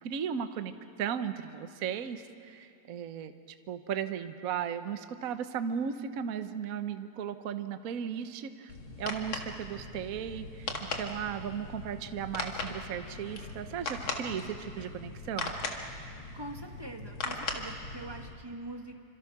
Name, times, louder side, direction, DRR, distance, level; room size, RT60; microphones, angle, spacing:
voice 1, 0.0-3.3 3.7-8.7 9.0-15.6, right 8 dB, 55° right, 9 dB, 1.1 m, -36 dB
sound 1, 8.7-18.3, left 3 dB, 65° left, 2.6 m, -39 dB
voice 2, 16.3-19.0, right 2 dB, 15° right, 3 dB, 1.3 m, -43 dB
28.0 x 26.0 x 6.0 m, 2.5 s
omnidirectional pair, 2.4 m